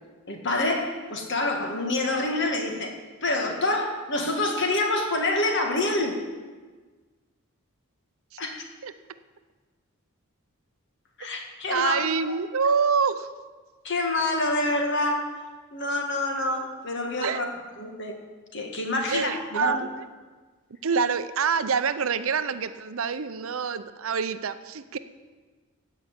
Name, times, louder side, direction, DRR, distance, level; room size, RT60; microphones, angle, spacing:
voice 1, 0.3-2.9 3.2-6.2 8.4-8.6 11.2-12.1 13.8-15.3 15.7-17.5 17.8-18.2 18.5-19.8, left 2 dB, 55° left, 3 dB, 1.9 m, -27 dB
voice 2, 11.7-13.3 17.2-17.5 19.1-19.9 20.8-25.0, right 6 dB, 65° right, 12 dB, 0.6 m, -26 dB
15.0 x 5.6 x 8.3 m, 1.4 s
head